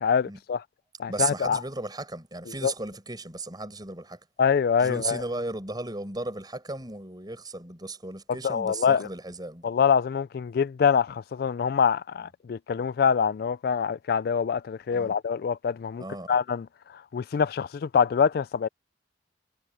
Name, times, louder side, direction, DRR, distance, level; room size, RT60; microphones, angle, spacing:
voice 1, 0.0-0.6 1.0-1.6 2.6-2.7 4.4-5.2 8.4-9.1 9.6-16.7 17.1-18.7, left 6 dB, 55° left, 0.3 m, -25 dB
voice 2, 1.1-4.2 4.8-9.7 14.9-15.2 16.0-16.3, right 3 dB, 25° right, 6.4 m, -35 dB
head